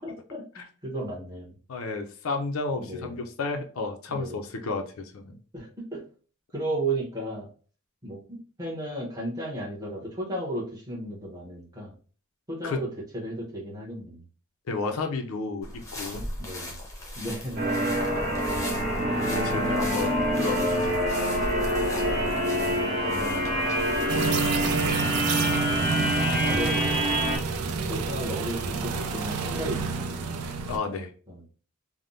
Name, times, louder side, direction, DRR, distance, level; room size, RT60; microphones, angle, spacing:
voice 1, 0.0-1.6 2.8-3.2 4.1-4.4 5.5-6.0 6.5-7.5 8.0-11.9 12.5-12.9 13.1-14.2 16.4-16.7 17.1-17.6 22.4-22.7 23.0-23.4 24.1-24.9 26.4-27.4 27.9-30.2 31.3-31.4, right 1 dB, 15° right, -4 dB, 0.9 m, -35 dB
voice 2, 1.7-5.4 12.6-12.8 14.7-16.2 19.2-21.1 30.7-31.1, left 3 dB, 70° left, 4 dB, 0.5 m, -32 dB
sound 1, 15.6-25.1, left 1 dB, 15° left, 0.7 m, -37 dB
sound 2, 17.6-27.4, equal, 50° right, 1.3 m, -26 dB
sound 3, 24.1-30.8, right 5 dB, 90° right, 0.4 m, -29 dB
3.4 x 2.0 x 2.6 m, 0.40 s
head